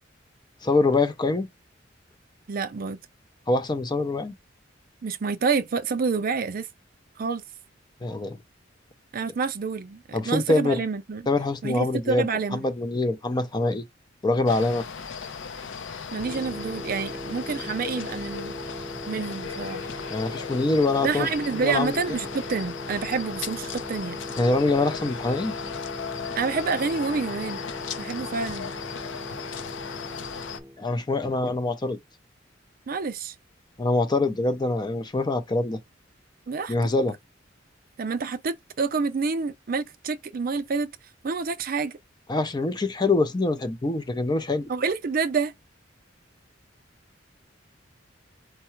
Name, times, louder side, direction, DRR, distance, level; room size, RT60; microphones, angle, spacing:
voice 1, 0.6-1.5 3.5-4.3 8.0-8.4 10.1-10.8 11.3-13.8 14.2-14.8 20.1-21.3 21.5-22.2 24.4-25.5 30.8-32.0 33.8-35.8 36.7-37.1 42.3-44.7, left 2 dB, 25° left, 0.5 m, -24 dB
voice 2, 2.5-3.0 5.0-6.7 7.2-7.4 9.1-11.2 11.6-12.6 16.1-18.5 19.1-19.9 21.0-24.2 26.4-27.7 28.0-28.7 32.9-33.3 36.5-36.7 38.0-40.9 41.2-42.0 44.7-45.5, right 4 dB, 50° right, 0.5 m, -28 dB
sound 1, 14.5-30.6, left 6 dB, 80° left, 0.6 m, -36 dB
sound 2, 16.2-30.8, equal, 10° right, 0.7 m, -39 dB
4.6 x 2.1 x 4.3 m
head